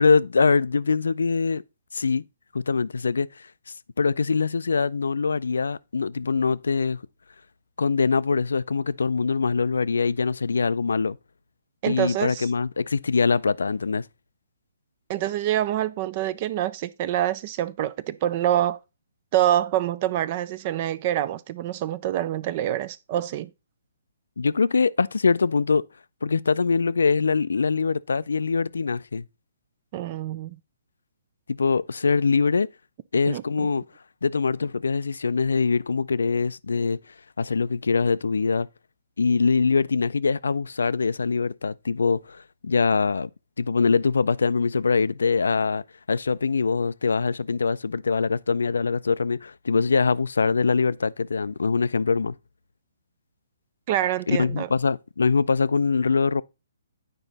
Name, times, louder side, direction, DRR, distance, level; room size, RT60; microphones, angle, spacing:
voice 1, 0.0-1.6 1.9-2.2 2.5-3.5 4.0-7.0 7.8-11.2 11.9-14.0 24.4-25.8 26.2-29.2 31.5-32.7 33.1-33.8 34.2-37.0 37.4-38.7 39.2-43.3 43.6-45.8 46.1-52.3 54.3-56.4, left 4 dB, 85° left, 0.3 m, -23 dB
voice 2, 11.8-12.5 15.1-18.8 19.3-23.5 29.9-30.6 33.3-33.7 53.9-54.7, right 12 dB, 35° right, 0.4 m, -26 dB
9.0 x 5.0 x 4.0 m
hypercardioid pair, 155°, 0 cm